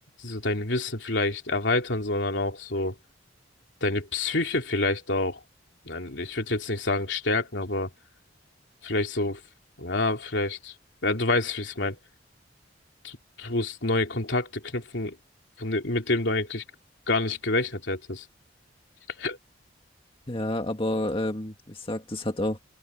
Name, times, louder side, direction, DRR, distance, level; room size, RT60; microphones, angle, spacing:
voice 1, 0.2-2.9 3.8-5.4 5.8-7.9 8.8-9.4 9.8-10.7 11.0-12.0 13.0-15.1 15.6-16.6 17.1-18.2 19.2-19.4, left 2 dB, 70° left, 3.2 m, -27 dB
voice 2, 20.3-22.6, left 1 dB, 30° left, 1.9 m, -29 dB
open air
head